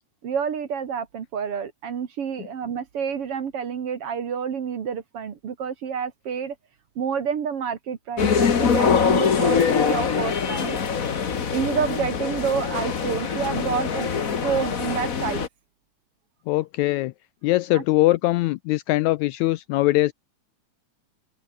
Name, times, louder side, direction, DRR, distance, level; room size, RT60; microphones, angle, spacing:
voice 1, 0.2-6.6 7.0-10.8 11.5-14.1 14.4-15.5 17.7-17.8, right 7 dB, 50° right, 2.4 m, -28 dB
sound 1, 8.2-15.5, left 6 dB, 40° left, 1.2 m, -23 dB
voice 2, 16.5-17.1 17.4-20.1, left 18 dB, 80° left, 1.7 m, -22 dB
open air
omnidirectional pair, 3.6 m